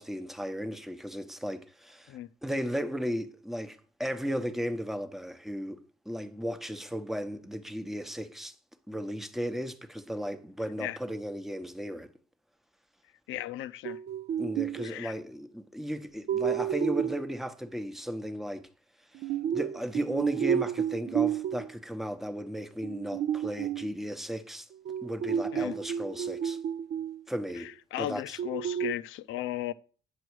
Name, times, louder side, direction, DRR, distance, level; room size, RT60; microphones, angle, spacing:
voice 1, 0.0-5.8 6.1-8.5 8.9-12.1 14.4-18.7 19.1-19.2 19.5-24.7 25.0-26.6 27.3-27.7 28.0-28.4, equal, ahead, 0.9 m, -35 dB
voice 2, 13.3-14.0 14.8-15.1 25.5-25.8 27.6-29.7, left 13 dB, 90° left, 0.6 m, -36 dB
sound 1, 13.8-15.0 16.3-17.3 19.1-21.7 22.8-23.9 24.9-27.2 27.5-27.6 28.4-28.9, right 9 dB, 55° right, 0.5 m, -31 dB
9.6 x 6.2 x 4.7 m
cardioid pair, 90°, 20 cm